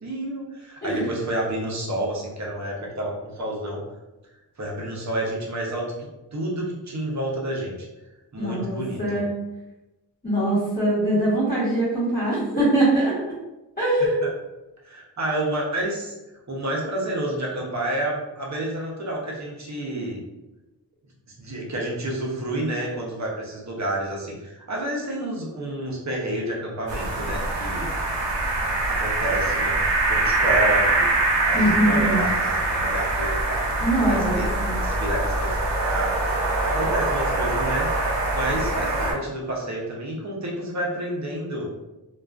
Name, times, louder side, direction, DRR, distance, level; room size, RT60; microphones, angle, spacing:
voice 1, 0.0-3.8 4.6-7.8 8.3-9.2 14.2-14.3 14.8-16.2 16.5-20.2 21.4-27.9 28.9-29.8 30.1-31.1 31.5-33.8 34.1-34.5 34.7-36.2 36.6-37.9 38.3-41.7, right 1 dB, 40° right, -2 dB, 0.6 m, -29 dB
voice 2, 8.4-9.3 10.2-13.3 13.8-14.2 31.5-32.2 33.8-34.7, right 1 dB, 25° left, -13 dB, 1.1 m, -22 dB
sound 1, 26.9-39.1, right 2 dB, 80° right, 0.7 m, -24 dB
2.3 x 2.3 x 2.3 m, 1.0 s
wide cardioid pair, 110°, 42 cm